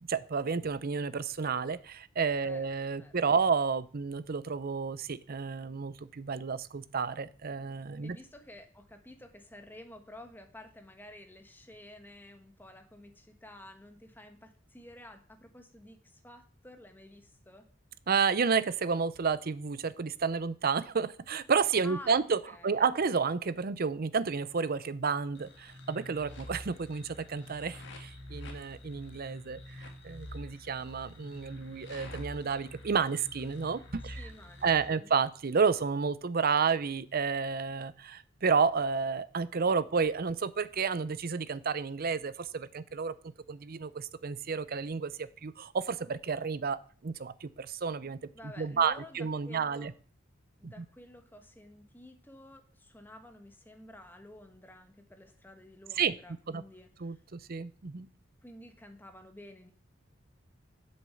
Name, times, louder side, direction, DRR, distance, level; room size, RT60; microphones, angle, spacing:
voice 1, 0.1-8.2 18.1-22.4 22.6-34.3 34.6-43.1 43.5-46.8 47.0-48.2 48.4-49.9 50.6-50.7 56.0-56.1 56.5-56.6 57.0-58.1, right 5 dB, 50° right, 15 dB, 0.6 m, -31 dB
voice 2, 8.0-17.6 21.8-22.2 22.5-22.9 34.1-35.1 48.3-49.9 50.6-57.2 58.4-59.7, left 1 dB, 10° left, 6 dB, 1.3 m, -51 dB
sound 1, 25.3-34.9, left 1 dB, 60° left, 2.0 m, -47 dB
7.9 x 7.1 x 7.0 m, 0.43 s
head